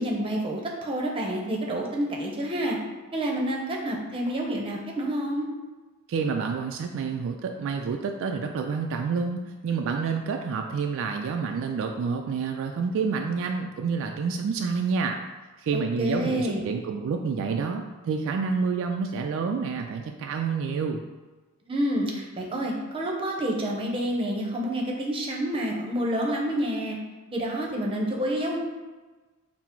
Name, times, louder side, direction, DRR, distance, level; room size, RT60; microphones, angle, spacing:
voice 1, 0.0-2.8 3.1-5.5 15.7-16.6 21.7-27.0 27.3-28.6, right 1 dB, 25° right, -1 dB, 0.7 m, -28 dB
voice 2, 6.1-15.2 15.6-21.0, right 5 dB, 60° right, 3 dB, 0.3 m, -28 dB
5.8 x 2.0 x 4.4 m, 1.2 s
head